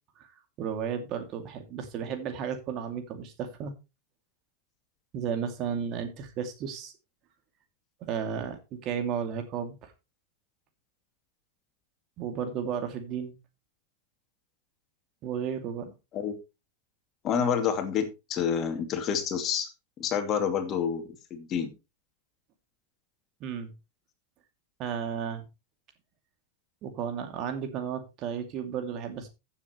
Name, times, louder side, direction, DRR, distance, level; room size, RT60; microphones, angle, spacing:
voice 1, 0.6-3.7 5.1-6.9 8.0-9.9 12.2-13.3 15.2-15.9 23.4-23.7 24.8-25.4 26.8-29.3, right 7 dB, 45° right, 6 dB, 2.4 m, -33 dB
voice 2, 17.2-19.7 20.0-21.7, left 7 dB, 35° left, 7 dB, 2.4 m, -28 dB
15.5 x 7.3 x 3.1 m, 0.26 s
hypercardioid pair, 95°, 0 cm